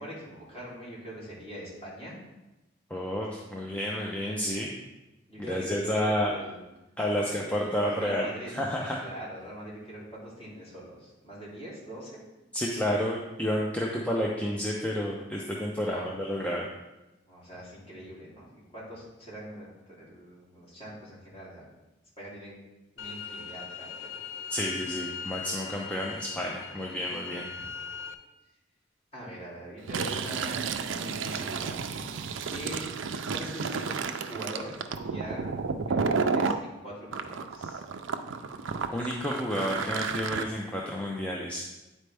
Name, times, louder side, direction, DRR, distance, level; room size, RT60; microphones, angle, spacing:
voice 1, 0.0-2.2 5.3-6.6 7.2-12.2 15.7-16.2 17.3-21.7 22.2-22.5 23.0-24.1 27.5-27.6 29.1-32.0 32.5-32.9 33.3-34.0 34.3-34.8 35.1-35.5 35.8-37.8, equal, 35° left, -7 dB, 2.6 m, -43 dB
voice 2, 2.9-4.7 5.5-6.3 7.0-9.0 12.5-16.7 24.5-27.5 38.9-41.6, equal, 5° left, -2 dB, 0.5 m, -30 dB
sound 1, 23.0-28.1, left 7 dB, 80° left, 0.5 m, -40 dB
Fill (with liquid), 29.8-36.6 37.1-40.4, right 5 dB, 80° right, 0.4 m, -32 dB
9.6 x 4.3 x 3.4 m, 0.99 s
head